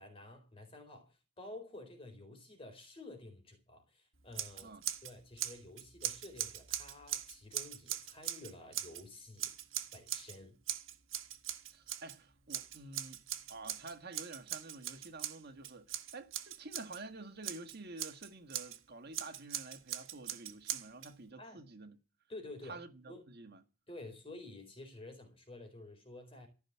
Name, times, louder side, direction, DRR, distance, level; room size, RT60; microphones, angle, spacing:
voice 1, 0.0-4.8 5.0-9.5 9.9-10.5 21.4-21.6 22.3-22.8 23.1-23.2 23.9-26.5, left 2 dB, 30° left, 4.2 m, -51 dB
Scissors, 4.3-5.1 5.4-9.0 9.4-10.4 10.7-12.2 12.5-17.0 17.4-18.8 19.1-21.1, right 11 dB, 70° right, 1.6 m, -40 dB
voice 2, 11.7-13.2 13.5-22.0 22.6-23.6, right 3 dB, 50° right, 1.6 m, -49 dB
15.0 x 5.9 x 9.8 m
head